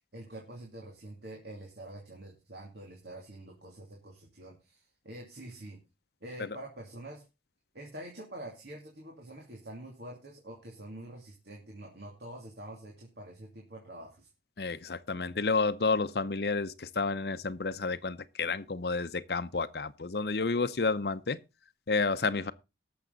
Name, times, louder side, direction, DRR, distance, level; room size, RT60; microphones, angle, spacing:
voice 1, 0.1-5.8 6.2-7.2 7.7-14.3, right 1 dB, 70° right, 2.7 m, -46 dB
voice 2, 14.6-21.4 21.9-22.5, left 4 dB, 65° left, 0.7 m, -30 dB
18.0 x 7.0 x 4.0 m
head